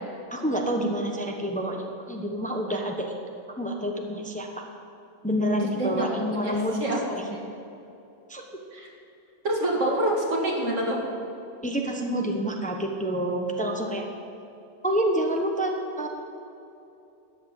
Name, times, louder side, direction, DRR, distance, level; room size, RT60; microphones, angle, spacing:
voice 1, 0.3-3.1 3.6-4.6 5.2-6.7 7.1-7.2 8.3-8.4 11.6-14.0 14.8-16.1, right 1 dB, 5° left, 2 dB, 1.0 m, -28 dB
voice 2, 5.8-6.1 6.4-7.0 8.7-8.9 9.4-11.0, right 1 dB, 80° right, -2 dB, 2.6 m, -26 dB
13.0 x 8.8 x 7.2 m, 2.8 s
omnidirectional pair, 1.3 m